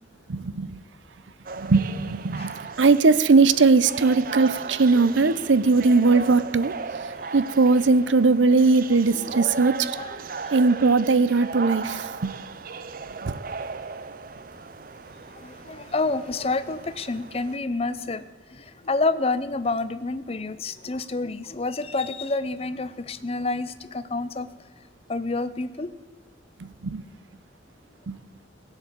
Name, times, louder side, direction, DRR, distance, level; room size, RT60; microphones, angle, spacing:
voice 1, 0.3-0.8 1.6-2.5 2.8-6.7 7.3-9.8 10.5-12.3 13.2-13.3 26.6-27.0 28.1-28.2, right 4 dB, 85° right, 16 dB, 0.6 m, -19 dB
sound 1, 1.4-17.6, right 4 dB, 50° right, 0.6 m, -36 dB
voice 2, 9.9-10.5 15.3-18.2 18.5-24.5 25.1-25.9, left 3 dB, 30° left, 14 dB, 0.6 m, -29 dB
16.5 x 7.3 x 8.2 m, 1.5 s
head